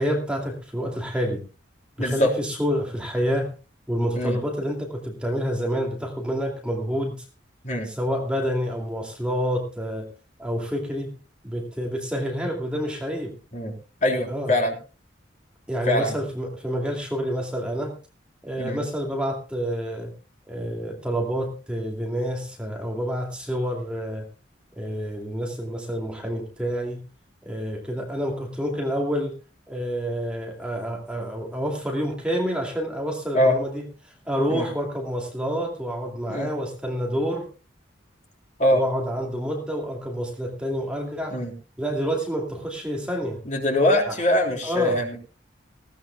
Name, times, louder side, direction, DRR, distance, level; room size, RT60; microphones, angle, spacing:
voice 1, 0.0-1.4 2.0-3.5 3.9-7.3 7.8-10.1 10.4-11.1 11.4-13.3 14.3-14.5 15.7-17.9 18.4-20.1 20.5-24.2 24.7-27.0 27.4-29.3 29.7-37.5 38.7-41.4 41.8-43.4 44.1-44.2 44.6-45.0, equal, 5° right, 0 dB, 2.5 m, -28 dB
voice 2, 2.0-2.3 4.2-4.4 7.6-7.9 13.5-13.7 14.0-14.7 15.9-16.2 18.6-18.8 33.3-33.5 34.5-34.7 36.3-36.5 38.6-38.8 41.3-41.5 43.5-45.2, left 1 dB, 40° left, 1 dB, 3.7 m, -22 dB
19.5 x 16.5 x 2.3 m, 0.32 s
head